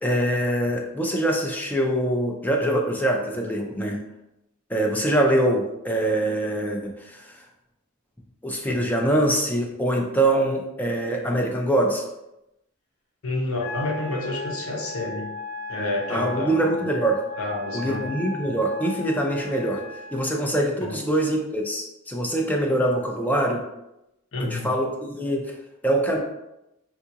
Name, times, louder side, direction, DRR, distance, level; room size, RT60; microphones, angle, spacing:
voice 1, 0.0-4.0 4.7-7.4 8.4-12.0 16.1-17.2 17.7-19.8 20.1-23.6 24.4-25.5 25.8-26.2, right 1 dB, 10° left, 0 dB, 0.4 m, -24 dB
voice 2, 13.2-15.3 15.7-16.6 17.4-18.1 20.8-21.0 24.3-24.8, left 2 dB, 80° left, -1 dB, 0.8 m, -29 dB
Wind instrument woodwind instrument, 13.6-20.2, left 3 dB, 35° left, 1.3 m, -37 dB
3.7 x 2.4 x 2.8 m, 0.90 s
head